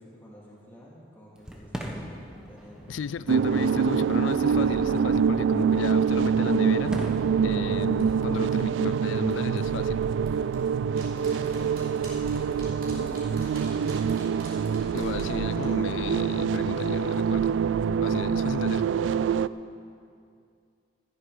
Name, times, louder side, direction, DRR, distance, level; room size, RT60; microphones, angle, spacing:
voice 1, 0.0-2.8 11.3-12.2 12.4-14.1, equal, 10° left, -6 dB, 2.7 m, -49 dB
Fireworks, 1.3-11.2, equal, 5° right, 1.1 m, -43 dB
voice 2, 2.9-7.0 7.4-10.0 14.9-17.5 18.0-18.8, left 7 dB, 85° left, 16 dB, 0.3 m, -34 dB
sound 1, 3.3-19.5, right 6 dB, 85° right, 0.3 m, -25 dB
sound 2, 7.1-16.6 16.9-17.0, equal, 50° right, 4.1 m, -45 dB
14.5 x 11.5 x 5.0 m, 2.4 s
head